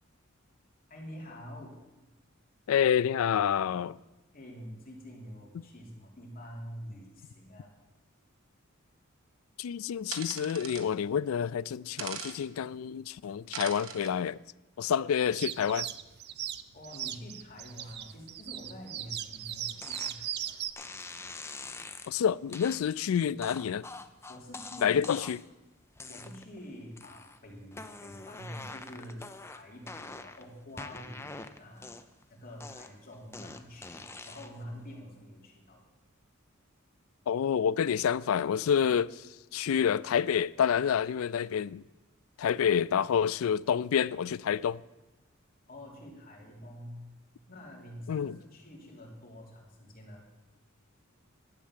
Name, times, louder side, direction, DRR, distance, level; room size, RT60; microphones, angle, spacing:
voice 1, 0.9-1.8 4.3-7.7 16.7-20.5 24.3-25.0 26.1-32.0 32.3-35.8 45.7-47.1 47.5-50.2, equal, 45° left, 3.2 m, -47 dB
voice 2, 2.7-4.0 9.6-14.4 14.8-15.9 22.1-23.9 24.8-25.4 37.3-39.3 39.5-41.8 42.4-44.8 48.1-48.4, left 8 dB, 75° left, 0.3 m, -28 dB
sound 1, 10.1-10.9 12.0-12.4 13.5-14.1, right 7 dB, 70° right, 1.3 m, -40 dB
sound 2, 15.3-20.7, right 11 dB, 55° right, 0.6 m, -38 dB
sound 3, 19.8-20.2 20.8-22.1 22.5-22.8 23.4-25.5 26.0-26.6 27.0-27.4 27.7-30.4 30.8-32.2 32.6-34.6, left 3 dB, 15° left, 0.6 m, -44 dB
12.0 x 8.7 x 7.4 m
head